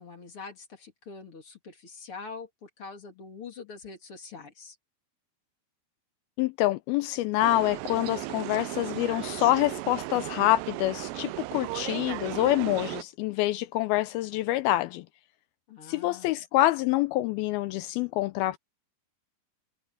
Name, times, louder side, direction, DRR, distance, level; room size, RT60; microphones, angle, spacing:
voice 1, 0.0-4.8 15.7-16.4, left 4 dB, 35° left, 2.8 m, -44 dB
voice 2, 6.4-15.1 15.9-18.6, left 16 dB, 90° left, 2.1 m, -26 dB
sound 1, 7.4-13.0, right 21 dB, 85° right, 2.8 m, -36 dB
omnidirectional pair, 5.0 m